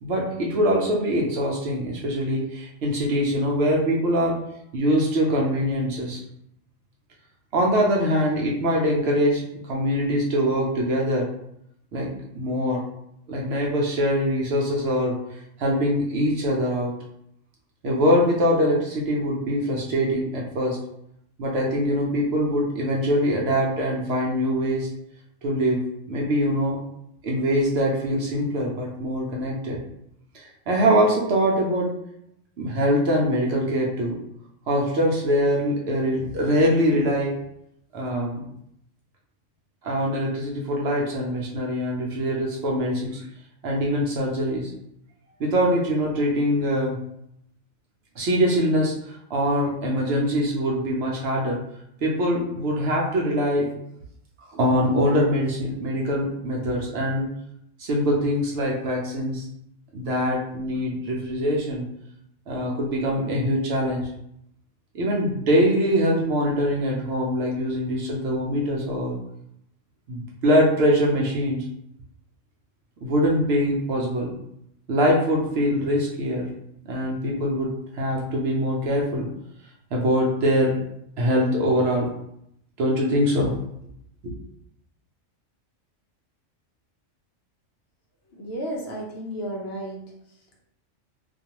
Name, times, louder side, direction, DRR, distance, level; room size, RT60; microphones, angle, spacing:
voice 1, 0.0-4.3 4.7-6.2 7.5-11.3 11.9-12.8 13.3-16.9 17.8-20.8 21.4-24.9 25.4-25.8 26.1-26.8 27.2-29.8 30.3-31.9 32.6-34.2 34.7-37.3 37.9-38.4 39.8-43.2 43.6-44.7 45.4-47.0 48.2-51.6 52.0-53.7 54.5-57.3 57.8-59.4 59.9-61.9 62.5-64.1 64.9-69.2 70.1-71.6 73.0-74.3 74.9-76.5 76.9-79.3 79.9-80.7 81.2-82.1 82.8-83.5 84.2-84.3, equal, 65° right, -2 dB, 0.8 m, -23 dB
voice 2, 88.3-90.6, right 1 dB, 65° left, -1 dB, 0.8 m, -34 dB
2.5 x 2.3 x 2.8 m, 0.76 s
omnidirectional pair, 1.3 m